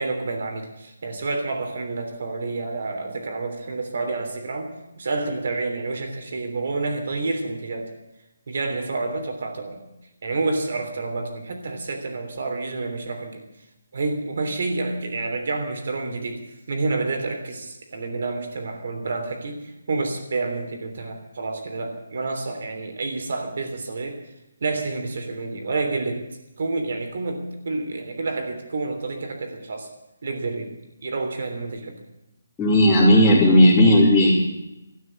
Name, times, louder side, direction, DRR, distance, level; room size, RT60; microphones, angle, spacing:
voice 1, 0.0-4.7 5.0-7.9 8.5-9.8 10.2-13.4 13.9-24.2 24.6-26.2 26.6-29.9 30.2-30.7 31.0-32.0 33.1-33.3, right 3 dB, 55° right, 4 dB, 3.3 m, -29 dB
voice 2, 32.6-34.3, left 1 dB, 5° left, -12 dB, 3.2 m, -14 dB
13.0 x 9.4 x 9.9 m, 0.92 s
hypercardioid pair, 160°, 0 cm